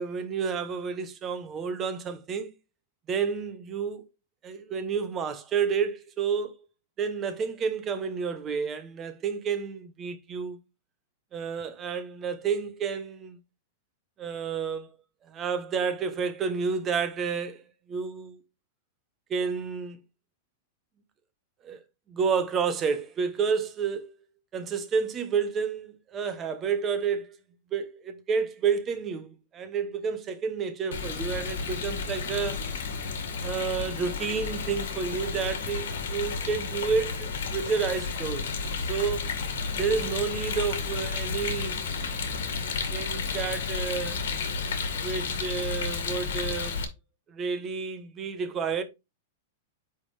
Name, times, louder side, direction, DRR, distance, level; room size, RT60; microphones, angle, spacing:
voice 1, 0.0-2.5 3.1-4.0 4.4-6.5 7.0-10.6 11.3-13.4 14.2-14.9 15.3-17.6 17.9-18.4 19.3-20.0 21.6-21.8 22.1-24.1 24.5-27.4 27.7-32.7 33.4-38.4 38.9-39.2 39.8-41.8 42.9-44.2 44.9-46.8 47.3-48.8, right 6 dB, 20° right, 0.8 m, -30 dB
Rain, 30.9-46.8, left 5 dB, 80° left, 1.8 m, -32 dB
9.6 x 3.6 x 3.3 m
supercardioid pair, 170°, 0 cm